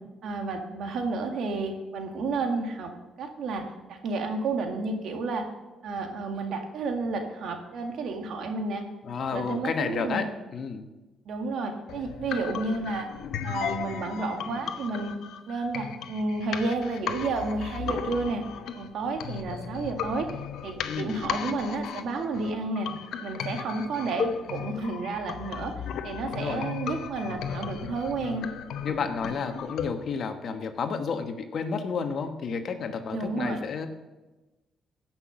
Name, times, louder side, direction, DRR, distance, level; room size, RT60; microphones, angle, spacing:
voice 1, 0.2-2.9 3.2-3.6 3.9-5.4 5.8-8.8 9.3-10.2 11.3-13.1 13.4-15.1 15.5-18.4 18.8-20.3 20.6-22.9 23.2-25.7 26.0-28.4 28.9-29.0 33.1-33.6, right 3 dB, 70° right, 4 dB, 2.0 m, -31 dB
voice 2, 9.0-10.9 20.8-21.2 26.2-26.7 28.1-28.5 28.8-33.9, left 5 dB, 60° left, 7 dB, 1.3 m, -31 dB
sound 1, 11.9-29.9, left 8 dB, 75° left, 0.9 m, -36 dB
16.0 x 6.1 x 6.4 m, 1.1 s
cardioid pair, 90°, 0 cm